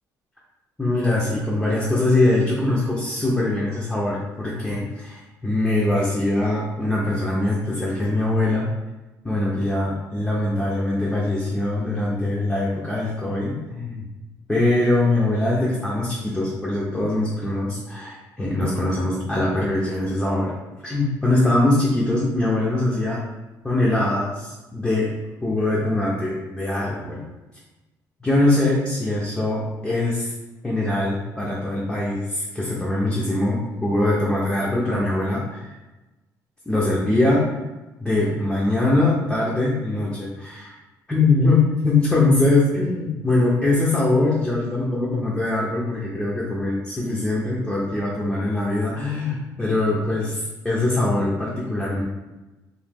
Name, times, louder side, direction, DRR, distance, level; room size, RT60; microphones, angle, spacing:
voice 1, 0.8-8.7 9.2-14.1 14.5-20.5 20.8-23.2 23.6-25.1 25.4-27.2 28.2-30.3 30.6-35.7 36.7-37.6 38.0-40.7 41.1-52.0, left 2 dB, 5° left, -5 dB, 0.4 m, -22 dB
2.9 x 2.1 x 3.4 m, 1.1 s
cardioid pair, 175°, 7 cm